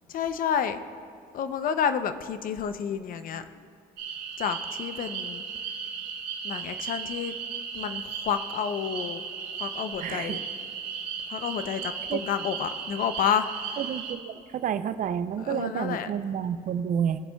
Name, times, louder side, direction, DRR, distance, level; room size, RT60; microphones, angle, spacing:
voice 1, 0.1-0.8 1.3-3.4 4.4-5.4 6.4-7.3 7.7-9.2 9.6-10.4 11.3-13.8 15.4-16.1, left 8 dB, 55° left, 11 dB, 0.5 m, -30 dB
sound 1, 4.0-14.1, right 6 dB, 90° right, 2.0 m, -36 dB
voice 2, 10.0-10.4 12.1-12.2 13.8-17.2, right 8 dB, 50° right, 12 dB, 0.5 m, -29 dB
19.5 x 7.1 x 2.2 m, 2.4 s
cardioid pair, 110°, 17 cm